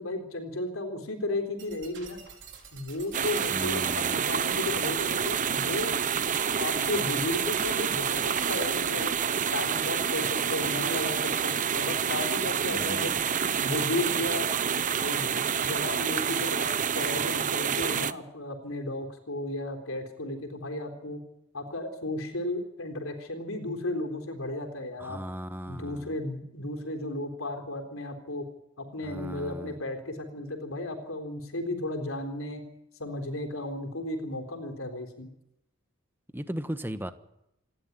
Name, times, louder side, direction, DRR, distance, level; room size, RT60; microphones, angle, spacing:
voice 1, 0.0-2.2 2.7-5.9 6.6-9.2 9.5-13.2 13.6-14.5 15.0-16.7 16.9-21.2 21.5-25.2 25.7-28.5 28.8-32.6 33.0-35.3, left 2 dB, 70° left, 4 dB, 3.8 m, -34 dB
sound 1, 1.6-9.1, right 6 dB, 55° right, 5.2 m, -48 dB
sound 2, 3.1-18.1, right 7 dB, 35° right, 0.8 m, -28 dB
voice 2, 3.5-4.1 12.7-13.3 25.0-26.1 29.0-29.7 36.3-37.1, equal, 10° right, 10 dB, 1.2 m, -37 dB
28.0 x 12.0 x 9.6 m, 0.84 s
head